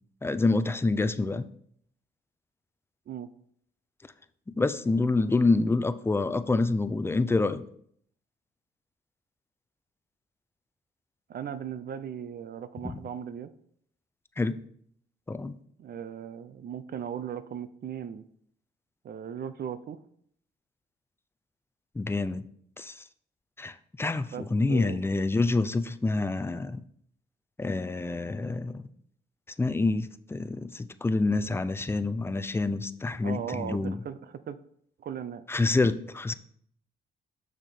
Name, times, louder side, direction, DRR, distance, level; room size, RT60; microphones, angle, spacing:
voice 1, 0.2-1.5 4.6-7.6 12.8-12.9 14.4-14.6 15.3-15.5 22.0-22.5 22.8-23.0 23.6-26.8 27.6-28.9 29.6-34.0 35.5-36.3, left 3 dB, 10° left, 12 dB, 0.5 m, -27 dB
voice 2, 11.3-13.5 15.8-18.2 19.0-20.0 24.3-25.0 33.2-34.6 35.0-35.4, right 8 dB, 50° right, 12 dB, 0.5 m, -37 dB
6.6 x 6.2 x 4.2 m, 0.66 s
cardioid pair, 90°, 20 cm